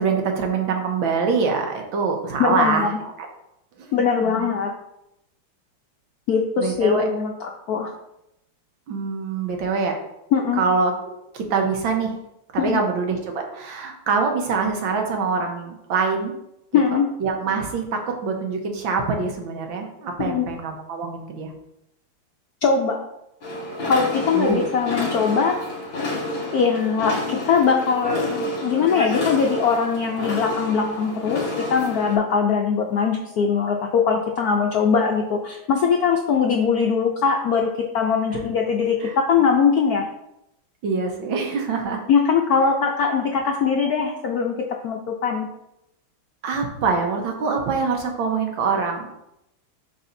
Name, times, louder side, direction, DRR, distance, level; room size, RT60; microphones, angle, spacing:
voice 1, 0.0-3.1 3.8-3.9 4.2-4.5 6.6-7.0 8.9-9.9 10.6-10.9 11.3-12.1 12.5-16.3 16.9-21.5 24.3-24.7 38.3-38.4 39.0-39.2 40.8-42.0 46.4-49.1, right 4 dB, 70° right, 2 dB, 1.7 m, -24 dB
voice 2, 2.4-2.9 3.9-4.7 6.3-7.9 10.3-10.6 12.6-12.8 16.7-17.1 20.2-20.4 22.6-23.0 23.9-25.6 26.5-40.1 42.1-45.5, left 6 dB, 75° left, 1 dB, 0.8 m, -21 dB
sound 1, 23.4-32.2, left 1 dB, 45° left, 1.8 m, -29 dB
11.0 x 4.1 x 2.6 m, 0.84 s
omnidirectional pair, 2.3 m